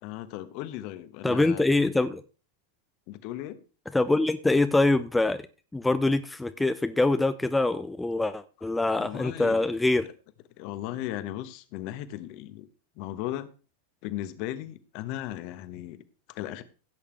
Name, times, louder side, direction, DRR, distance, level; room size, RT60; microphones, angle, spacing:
voice 1, 0.0-1.6 3.1-3.6 9.0-9.7 10.6-12.7 13.0-13.5 14.0-16.6, left 13 dB, 45° left, 1.1 m, -36 dB
voice 2, 1.2-2.2 3.9-5.4 5.7-10.1, left 2 dB, 5° left, 0.5 m, -24 dB
16.0 x 8.6 x 3.3 m
figure-of-eight pair, 90°, 0 cm